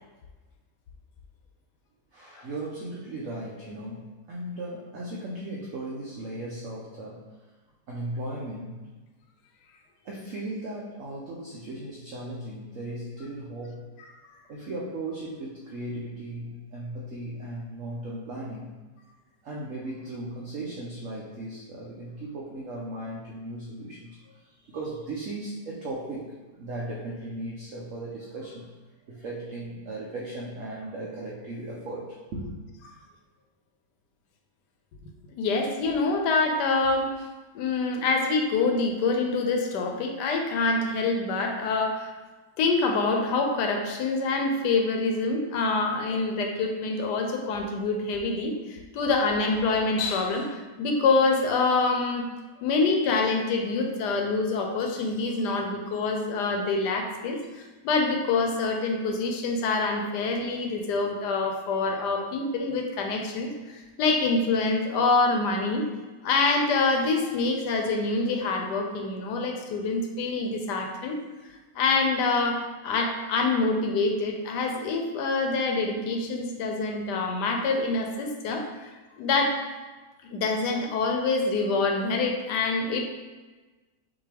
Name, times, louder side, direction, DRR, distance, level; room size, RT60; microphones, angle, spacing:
voice 1, 2.1-7.2 7.9-8.8 10.0-13.8 14.5-18.7 19.4-28.7 29.1-32.5, right 1 dB, 60° right, -4 dB, 0.9 m, -37 dB
voice 2, 35.4-37.1 37.5-42.1 42.6-52.3 52.6-63.5 64.0-65.9 66.2-71.2 71.7-79.6 80.3-83.0, left 3 dB, 80° left, 3 dB, 1.2 m, -26 dB
6.0 x 2.7 x 3.3 m, 1.2 s
omnidirectional pair, 1.8 m